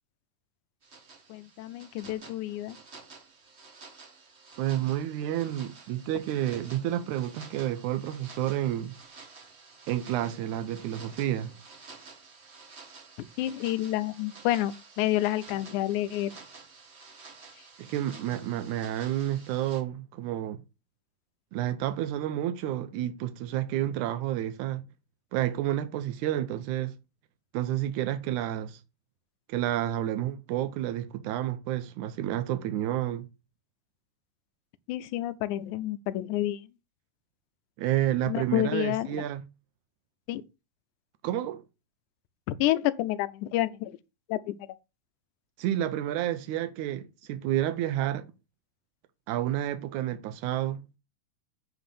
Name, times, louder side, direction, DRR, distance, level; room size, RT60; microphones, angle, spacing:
sound 1, 0.8-19.8, right 4 dB, 55° right, 0.7 m, -51 dB
voice 1, 1.3-2.8 13.4-16.3 34.9-36.7 38.3-39.2 40.3-40.4 42.5-44.0 44.3-44.7, left 14 dB, 85° left, 2.1 m, -29 dB
voice 2, 4.6-8.9 9.9-11.5 17.8-20.6 21.5-24.8 25.3-26.9 27.5-28.8 29.5-33.3 37.8-39.4 41.2-41.6 45.6-48.3 49.3-50.8, right 12 dB, 85° right, 2.1 m, -30 dB
9.3 x 3.4 x 6.8 m
omnidirectional pair, 3.5 m